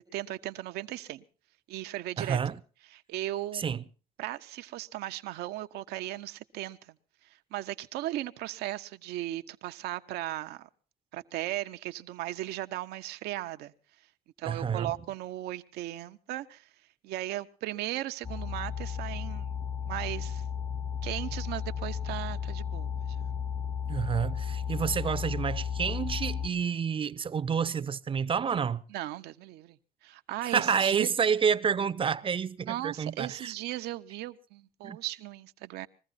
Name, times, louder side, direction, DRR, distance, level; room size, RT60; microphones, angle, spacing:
voice 1, 0.1-1.2 1.7-2.4 2.9-3.6 4.2-7.0 7.5-10.7 11.1-13.7 14.4-16.7 17.0-19.6 19.8-20.4 21.0-23.3 28.9-31.1 32.7-35.9, right 15 dB, 80° right, 0.9 m, -37 dB
voice 2, 2.2-2.6 3.5-3.8 14.4-14.9 23.9-28.8 30.4-33.5 34.8-35.0, right 7 dB, 30° right, 0.7 m, -29 dB
sound 1, 18.2-26.5, left 7 dB, 20° left, 0.9 m, -34 dB
21.5 x 14.5 x 4.1 m
supercardioid pair, 85°, 17 cm